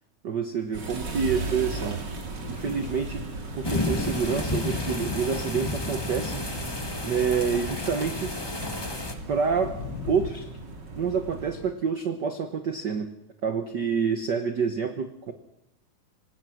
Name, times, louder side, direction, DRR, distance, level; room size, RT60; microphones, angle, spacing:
voice 1, 0.2-2.0 2.5-3.3 3.6-6.5 7.0-8.3 9.3-9.8 10.1-10.4 11.0-13.1 13.4-15.3, right 6 dB, 85° right, 8 dB, 0.9 m, -27 dB
sound 1, 0.7-11.7, right 3 dB, 35° right, 2.7 m, -37 dB
Thunder, 0.8-10.3, left 6 dB, 80° left, 0.8 m, -44 dB
sound 2, 3.6-9.1, left 2 dB, 45° left, 0.3 m, -31 dB
25.0 x 18.0 x 6.4 m, 0.82 s
omnidirectional pair, 3.5 m